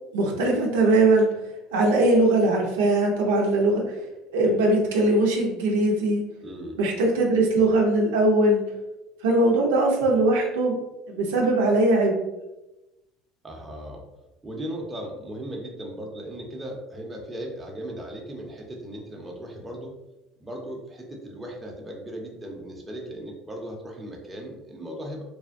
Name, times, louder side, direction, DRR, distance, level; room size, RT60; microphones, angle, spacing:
voice 1, 0.1-1.3 1.7-3.8 4.3-6.2 6.8-8.6 9.2-10.8 11.1-12.2, right 2 dB, 90° right, -1 dB, 0.6 m, -20 dB
voice 2, 6.4-6.8 13.4-14.0 14.4-19.9 20.4-25.2, right 1 dB, 15° right, -1 dB, 0.7 m, -37 dB
3.3 x 2.2 x 2.5 m, 0.98 s
supercardioid pair, 100°, 0 cm